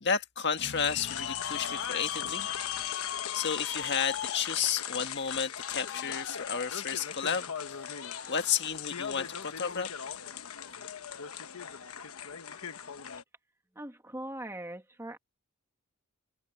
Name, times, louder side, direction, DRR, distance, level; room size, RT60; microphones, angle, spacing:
voice 1, 0.0-2.5 2.8-2.9 3.3-7.9 8.3-9.9, left 6 dB, 55° left, 1.7 m, -32 dB
sound 1, 0.6-13.2, left 8 dB, 80° left, 1.1 m, -37 dB
voice 2, 13.8-15.2, right 1 dB, 10° right, 2.0 m, -40 dB
head